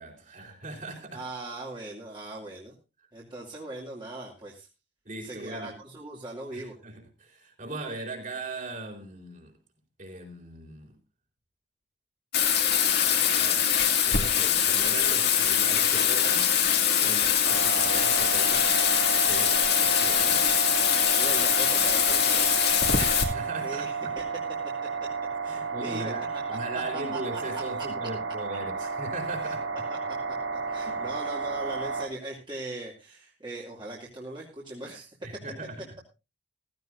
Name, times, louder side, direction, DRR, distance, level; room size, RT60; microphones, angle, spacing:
voice 1, 0.0-1.2 5.0-5.7 6.5-9.5 10.0-10.9 13.4-16.6 17.0-19.6 19.8-20.5 23.0-24.1 25.5-29.7 30.8-31.1 35.2-35.8, right 2 dB, 45° right, 4.3 m, -39 dB
voice 2, 1.1-2.7 3.1-4.7 5.2-6.7 21.1-22.6 23.6-24.2 24.8-25.1 25.4-26.1 27.1-27.9 29.4-29.5 29.9-35.1, right 2 dB, 25° right, 2.5 m, -40 dB
Bathtub (filling or washing), 12.3-23.2, left 9 dB, 60° left, 2.5 m, -23 dB
sound 1, 17.4-32.1, right 5 dB, 80° right, 2.4 m, -32 dB
15.5 x 15.0 x 2.6 m
head